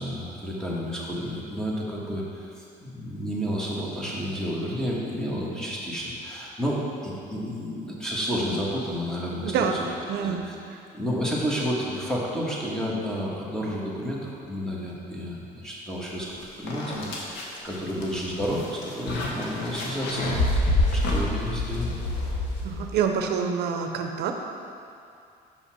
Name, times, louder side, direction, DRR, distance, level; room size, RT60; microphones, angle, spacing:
voice 1, 0.0-9.8 10.2-10.5 10.9-20.3 20.5-22.0, equal, 5° left, -5 dB, 1.6 m, -31 dB
voice 2, 9.4-9.8 10.1-10.8 22.6-24.3, right 7 dB, 75° right, 4 dB, 0.6 m, -27 dB
sound 1, 16.2-16.3 16.7-23.0, left 1 dB, 90° left, 1.2 m, -27 dB
5.8 x 5.5 x 6.1 m, 2.5 s
cardioid pair, 110°, 17 cm